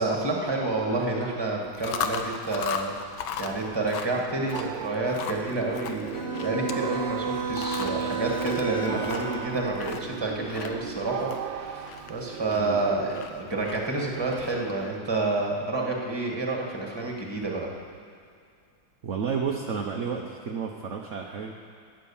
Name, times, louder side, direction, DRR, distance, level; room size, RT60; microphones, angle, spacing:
voice 1, 0.0-6.1 6.3-17.7, right 2 dB, 15° right, -1 dB, 1.6 m, -29 dB
Chewing mastication, 1.6-14.8, left 7 dB, 80° left, 1.6 m, -38 dB
sound 1, 4.5-13.3, right 10 dB, 75° right, 1.3 m, -37 dB
Bowed string instrument, 6.1-9.8, right 4 dB, 20° left, 0.5 m, -32 dB
voice 2, 19.0-21.5, right 6 dB, 55° right, 1 dB, 0.8 m, -31 dB
13.0 x 9.4 x 7.1 m, 2.3 s
omnidirectional pair, 2.2 m